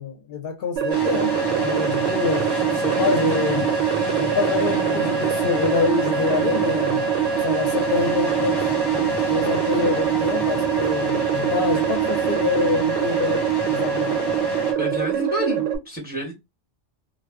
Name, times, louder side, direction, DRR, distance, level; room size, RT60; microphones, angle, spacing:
voice 1, 0.0-3.7 4.2-8.7 9.3-14.2 14.8-14.9, left 5 dB, 60° left, 0.7 m, -26 dB
sound 1, 0.8-15.8, right 9 dB, 85° right, 0.9 m, -23 dB
sound 2, 0.9-14.7, left 1 dB, 25° left, 0.8 m, -30 dB
voice 2, 14.8-16.3, right 1 dB, 10° right, 0.7 m, -28 dB
2.3 x 2.0 x 3.4 m
omnidirectional pair, 1.2 m